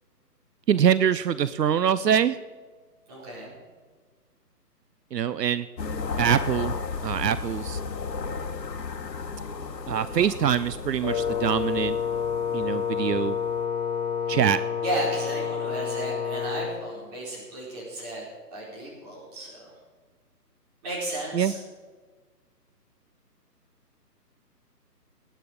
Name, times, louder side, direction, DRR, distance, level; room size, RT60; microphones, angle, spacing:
voice 1, 0.7-2.4 5.1-5.7 6.2-6.7 7.0-7.8 9.9-12.0 12.5-13.4 14.3-14.6 21.3-21.5, right 9 dB, 80° right, 15 dB, 0.7 m, -24 dB
voice 2, 3.1-3.5 14.8-18.2 18.5-19.7 20.8-21.6, right 1 dB, 25° right, -4 dB, 4.6 m, -34 dB
sound 1, 5.8-13.6, left 4 dB, 80° left, 1.4 m, -34 dB
Wind instrument woodwind instrument, 11.0-16.8, left 7 dB, 30° left, 1.5 m, -29 dB
19.5 x 9.1 x 5.1 m, 1.4 s
hypercardioid pair, 160°, 49 cm